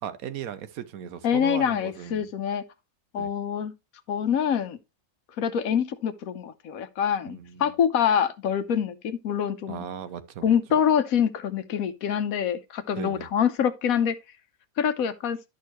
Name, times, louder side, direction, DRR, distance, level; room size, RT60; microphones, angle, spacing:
voice 1, 0.0-2.3 3.2-3.3 7.3-7.7 9.7-10.5 13.0-13.3, right 9 dB, 85° right, 1.2 m, -37 dB
voice 2, 1.2-2.6 3.1-3.7 4.1-4.8 5.4-9.8 10.4-14.2 14.8-15.4, left 8 dB, 80° left, 1.2 m, -25 dB
11.0 x 6.4 x 3.0 m
omnidirectional pair, 1.5 m